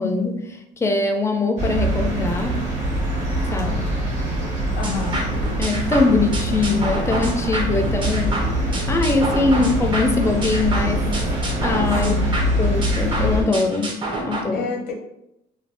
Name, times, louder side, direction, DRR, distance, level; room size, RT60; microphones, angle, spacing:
voice 1, 0.0-2.6 3.4-3.7 5.6-8.4 8.9-11.1 11.6-12.2 12.6-14.6, left 3 dB, 15° left, 5 dB, 0.4 m, -22 dB
sound 1, 1.6-13.4, equal, 45° right, 1.4 m, -24 dB
voice 2, 3.4-3.9 4.8-5.3 9.6-9.7 11.9-12.4 14.5-14.9, left 4 dB, 85° left, 1 dB, 0.7 m, -29 dB
sound 2, 4.8-14.4, right 2 dB, 30° right, 0.6 m, -29 dB
2.6 x 2.2 x 3.3 m, 0.84 s
cardioid pair, 110°, 17 cm